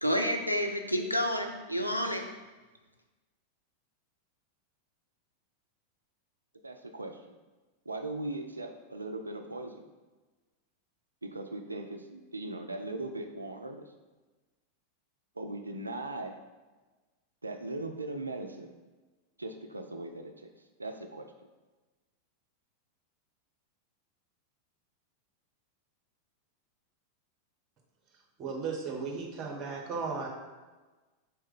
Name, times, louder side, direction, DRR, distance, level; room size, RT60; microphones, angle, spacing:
voice 1, 0.0-2.3, equal, 90° left, 4 dB, 0.4 m, -29 dB
voice 2, 6.6-7.2 7.9-9.8 11.2-13.9 15.4-16.4 17.4-18.7 19.4-20.5 20.8-21.3, right 2 dB, 80° right, 6 dB, 0.3 m, -39 dB
voice 3, 28.4-30.3, right 4 dB, 35° right, 0 dB, 1.0 m, -35 dB
4.1 x 3.2 x 3.7 m, 1.2 s
figure-of-eight pair, 90°, 0 cm